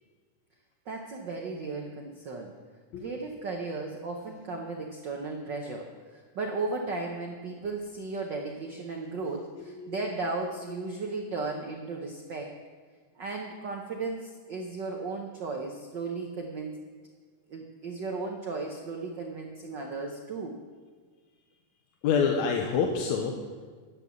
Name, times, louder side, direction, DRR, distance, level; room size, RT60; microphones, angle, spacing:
voice 1, 0.9-2.5 3.0-12.5 13.2-16.8 17.5-20.5, right 3 dB, 80° right, 1 dB, 1.0 m, -35 dB
voice 2, 9.6-10.1 10.7-11.0 22.0-23.4, left 6 dB, 70° left, 2 dB, 2.1 m, -28 dB
11.0 x 9.1 x 7.2 m, 1.5 s
omnidirectional pair, 3.6 m